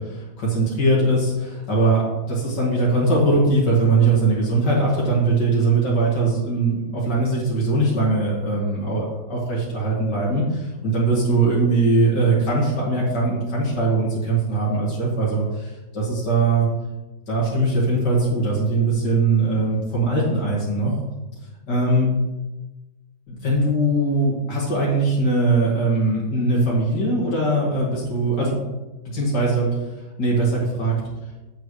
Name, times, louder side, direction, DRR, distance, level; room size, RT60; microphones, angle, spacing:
voice 1, 0.0-2.0 2.3-16.7 17.3-20.9 21.7-22.1 23.3-28.6 29.0-29.7 30.2-30.9, right 2 dB, 70° left, -6 dB, 2.6 m, -21 dB
8.0 x 7.2 x 3.2 m, 1.1 s
omnidirectional pair, 1.9 m